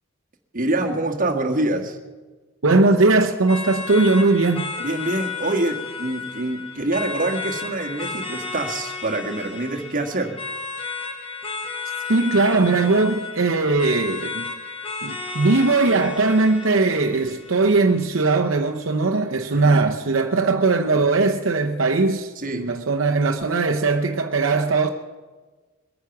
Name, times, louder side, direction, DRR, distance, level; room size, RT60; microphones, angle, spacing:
voice 1, 0.5-2.0 4.8-10.4 19.5-19.8 22.3-22.7, right 2 dB, 40° right, 1.6 m, -25 dB
voice 2, 2.6-4.7 12.1-14.4 15.0-24.9, right 3 dB, 70° right, 0.8 m, -19 dB
sound 1, 3.5-18.4, left 5 dB, 25° left, 1.4 m, -33 dB
22.5 x 9.5 x 5.9 m
head